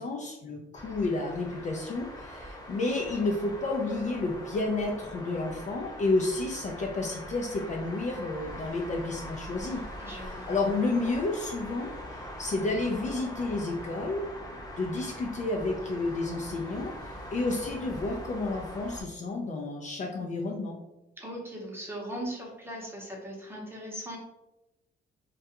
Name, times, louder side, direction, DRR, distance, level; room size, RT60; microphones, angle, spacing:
voice 1, 0.0-9.8 10.1-14.2 14.8-20.8, left 2 dB, 40° left, 1 dB, 0.4 m, -31 dB
sound 1, 0.7-19.0, equal, 20° left, 0.7 m, -42 dB
voice 2, 10.0-10.5 21.2-24.2, equal, 10° right, -2 dB, 0.8 m, -39 dB
2.3 x 2.2 x 2.8 m, 0.93 s
cardioid pair, 90°, 20 cm